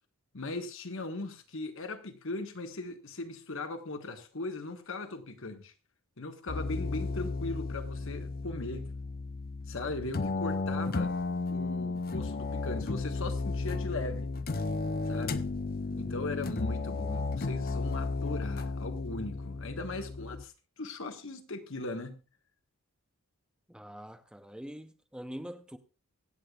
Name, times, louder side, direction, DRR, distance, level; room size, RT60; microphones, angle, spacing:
voice 1, 0.3-5.7 6.2-8.9 9.7-11.1 11.5-14.3 15.0-15.5 16.0-22.2, left 2 dB, 60° left, 1.3 m, -39 dB
sound 1, 6.5-20.4, left 3 dB, 40° left, 0.6 m, -34 dB
voice 2, 15.9-16.4 23.7-25.8, equal, 5° right, 0.6 m, -45 dB
24.0 x 8.5 x 2.4 m
head